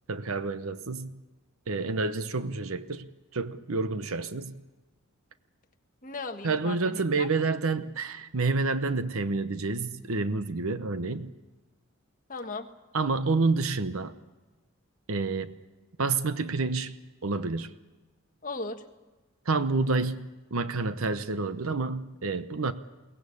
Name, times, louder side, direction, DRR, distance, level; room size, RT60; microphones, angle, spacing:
voice 1, 0.1-1.1 1.7-3.1 3.3-4.5 6.4-11.3 12.9-14.1 15.1-15.5 16.0-17.0 17.2-17.7 19.5-22.7, right 3 dB, 70° right, 0.9 m, -29 dB
voice 2, 6.0-7.3 12.3-12.7 18.4-18.8, left 3 dB, 35° left, 1.5 m, -37 dB
22.5 x 18.0 x 8.4 m
head